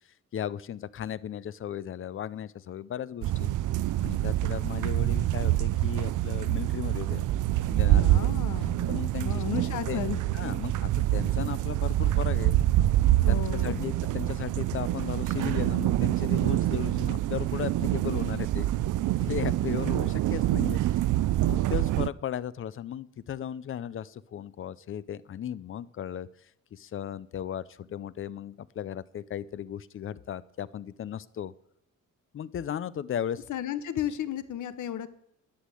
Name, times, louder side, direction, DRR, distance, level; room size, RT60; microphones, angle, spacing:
voice 1, 0.3-3.5 4.0-7.3 7.7-8.4 8.9-9.4 9.7-10.0 10.3-12.6 13.3-18.7 19.2-21.0 21.4-31.5 32.3-33.4, left 9 dB, 45° left, 18 dB, 0.5 m, -36 dB
sound 1, 3.2-22.1, right 14 dB, 80° right, 0.5 m, -26 dB
voice 2, 7.9-8.9 9.2-10.2 13.2-13.8 19.3-19.5 19.8-19.9 33.5-35.2, left 10 dB, 75° left, 13 dB, 1.1 m, -34 dB
11.5 x 8.3 x 7.7 m, 0.76 s
wide cardioid pair, 170°, 30 cm